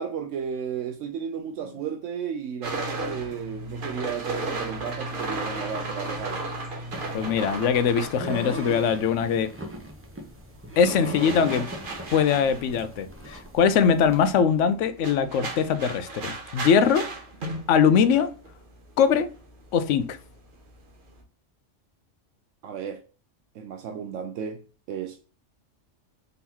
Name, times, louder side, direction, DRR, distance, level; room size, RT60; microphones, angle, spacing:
voice 1, 0.0-6.4 22.6-23.0 23.5-24.6 24.9-25.2, right 7 dB, 80° right, 0.9 m, -33 dB
sound 1, 2.6-9.3 9.6-21.2, right 2 dB, 45° right, 1.0 m, -35 dB
sound 2, 6.9-14.3, equal, 15° right, 0.7 m, -38 dB
voice 2, 7.1-9.5 10.8-11.7 12.1-17.1 17.7-18.3 19.0-19.3 19.7-20.2, left 7 dB, 75° left, 0.9 m, -22 dB
3.9 x 3.9 x 2.8 m
omnidirectional pair, 1.3 m